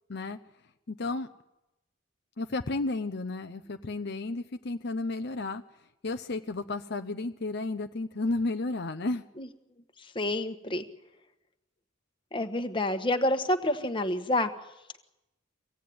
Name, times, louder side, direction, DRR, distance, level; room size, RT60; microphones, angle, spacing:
voice 1, 0.9-1.3 2.4-5.6 6.0-9.2, left 2 dB, 55° left, 7 dB, 0.7 m, -32 dB
voice 2, 10.0-10.8 12.3-14.5, left 1 dB, 25° left, 8 dB, 1.3 m, -28 dB
24.5 x 16.5 x 9.5 m, 0.96 s
head